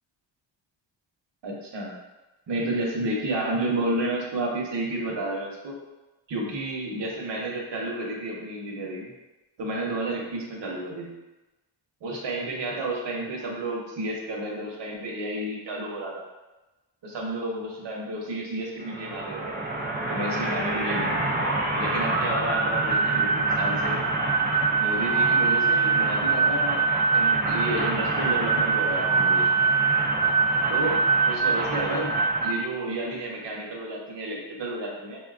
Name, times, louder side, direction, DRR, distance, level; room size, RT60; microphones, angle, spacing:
voice 1, 1.4-1.9 2.5-5.8 6.3-9.1 9.6-11.2 12.0-16.2 17.0-19.5 20.1-21.1 21.8-24.0 24.8-29.6 30.7-31.0 31.3-32.1 32.4-35.2, right 1 dB, 65° right, -2 dB, 0.9 m, -31 dB
sound 1, 18.8-32.5, right 4 dB, 25° right, 0.3 m, -24 dB
5.3 x 2.3 x 2.4 m, 1.1 s
wide cardioid pair, 150°, 46 cm